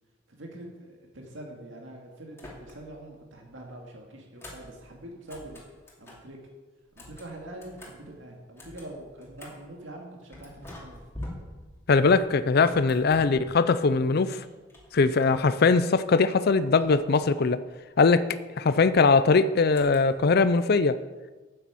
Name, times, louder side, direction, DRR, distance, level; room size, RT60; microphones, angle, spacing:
voice 1, 0.3-5.6 6.0-6.4 7.0-11.0 13.2-13.3, right 1 dB, 75° right, 0 dB, 2.2 m, -44 dB
sound 1, 2.3-3.1 3.4-6.3 6.8-9.7 10.3-13.9 14.3-16.0 16.3-17.7 19.7-20.3, left 1 dB, 15° left, 2.8 m, -47 dB
voice 2, 11.9-14.4 14.9-17.6 18.0-18.3 18.6-21.0, left 4 dB, 55° left, 12 dB, 0.5 m, -21 dB
9.6 x 8.8 x 7.0 m, 1.2 s
head